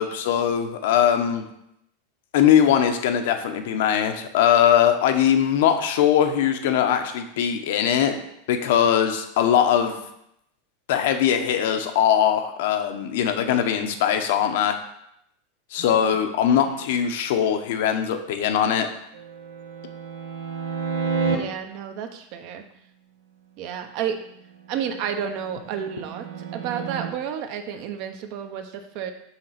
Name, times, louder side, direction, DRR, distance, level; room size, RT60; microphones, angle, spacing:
voice 1, 0.0-1.4 2.3-8.2 8.5-10.0 10.9-14.8 15.7-18.9, left 9 dB, 65° left, 7 dB, 0.9 m, -21 dB
sound 1, 19.1-21.4 24.7-27.1, right 5 dB, 90° right, 1.0 m, -30 dB
voice 2, 21.3-22.6 23.6-24.2 24.7-29.1, right 8 dB, 50° right, 7 dB, 0.7 m, -31 dB
5.8 x 3.8 x 5.8 m, 0.77 s
supercardioid pair, 150°, 0 cm